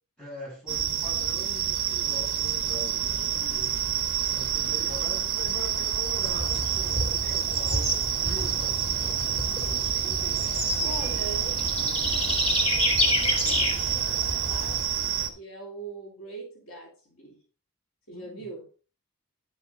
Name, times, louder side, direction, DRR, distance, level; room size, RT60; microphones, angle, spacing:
voice 1, 0.2-3.9 4.3-10.5 18.1-18.5, left 1 dB, 5° left, 6.5 m, -43 dB
sound 1, 0.7-15.3, right 9 dB, 55° right, 1.8 m, -28 dB
Bird / Insect, 6.3-14.8, left 1 dB, 30° left, 2.4 m, -30 dB
voice 2, 10.8-17.4 18.1-18.7, right 3 dB, 65° left, 3.1 m, -42 dB
10.5 x 7.1 x 4.1 m
head